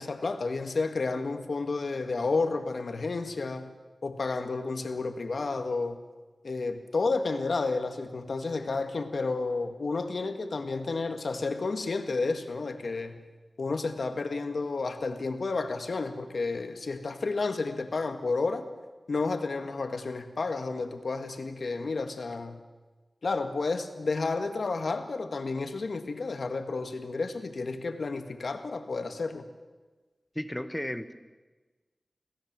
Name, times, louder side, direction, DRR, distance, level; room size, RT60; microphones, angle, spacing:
voice 1, 0.0-3.7 4.0-6.0 6.4-13.2 13.6-18.7 19.1-22.6 23.2-29.4, left 3 dB, 85° left, 8 dB, 1.9 m, -31 dB
voice 2, 30.3-31.1, left 1 dB, 10° left, 10 dB, 1.4 m, -34 dB
26.0 x 17.0 x 7.6 m, 1.3 s
wide cardioid pair, 80°, 0 cm